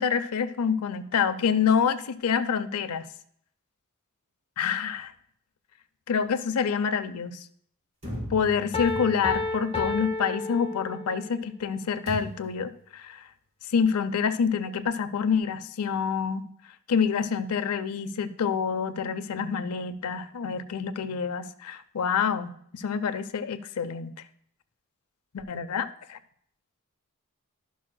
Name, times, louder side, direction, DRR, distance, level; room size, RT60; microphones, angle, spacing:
voice 1, 0.0-3.1 4.6-5.1 6.1-7.5 8.3-13.2 13.7-16.5 16.9-24.1 25.3-26.2, left 6 dB, 85° left, 11 dB, 0.5 m, -27 dB
sound 1, 8.0-9.5 12.1-12.6, equal, 30° right, 3.1 m, -38 dB
Piano, 8.7-11.3, left 3 dB, 25° left, 0.6 m, -31 dB
11.5 x 6.2 x 2.2 m, 0.66 s
head